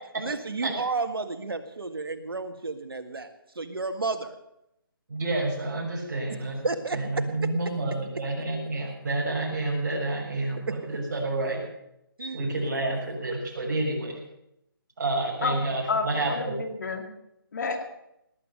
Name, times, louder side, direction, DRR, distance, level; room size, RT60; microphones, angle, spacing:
voice 1, 0.2-4.4 6.6-7.0 10.7-10.8 12.2-12.4 12.7-12.8, right 3 dB, 80° right, 7 dB, 1.9 m, -32 dB
voice 2, 5.1-11.6 12.2-14.2 15.0-16.5, right 2 dB, 50° right, -1 dB, 6.4 m, -29 dB
voice 3, 15.9-17.1 17.5-17.8, left 4 dB, 50° left, 6 dB, 2.3 m, -29 dB
19.0 x 9.3 x 6.8 m, 0.82 s
figure-of-eight pair, 160°, 12 cm